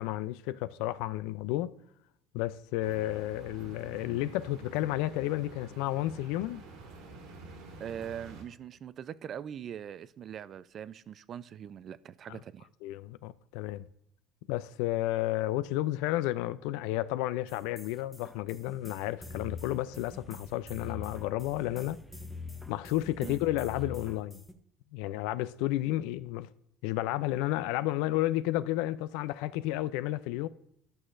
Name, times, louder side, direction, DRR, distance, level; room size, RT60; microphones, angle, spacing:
voice 1, 0.0-1.7 2.3-6.6 12.3-12.4 12.8-13.9 14.5-22.0 22.7-24.4 24.9-26.5 26.8-30.5, left 15 dB, 80° left, 0.4 m, -32 dB
sound 1, 2.8-8.4, right 3 dB, 75° right, 1.8 m, -48 dB
voice 2, 7.8-12.7 23.2-23.4, right 9 dB, 40° right, 0.3 m, -42 dB
sound 2, 17.5-24.5, left 3 dB, 5° left, 0.6 m, -45 dB
12.0 x 6.3 x 2.5 m
cardioid pair, 140°, 0 cm